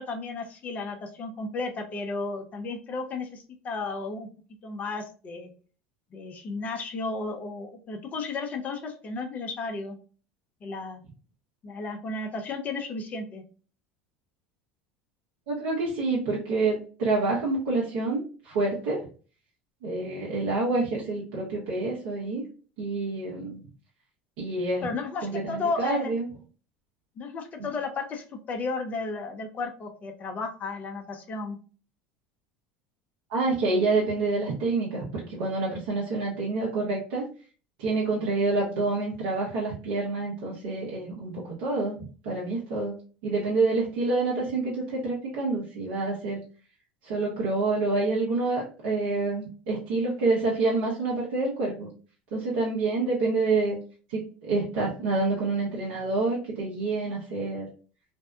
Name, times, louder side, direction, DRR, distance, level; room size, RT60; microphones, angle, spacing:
voice 1, 0.0-4.3 4.6-5.5 6.1-10.0 10.6-11.0 11.6-13.4 24.8-26.1 27.2-31.6, left 3 dB, 40° left, 4 dB, 0.6 m, -33 dB
voice 2, 15.5-19.0 19.8-22.4 22.8-23.6 24.4-24.8 25.2-26.3 33.3-37.3 37.8-42.9 43.2-46.4 47.0-51.9 52.3-53.8 54.1-57.7, right 3 dB, 75° right, -5 dB, 0.8 m, -27 dB
2.6 x 2.2 x 2.3 m, 0.37 s
hypercardioid pair, 80°, 4 cm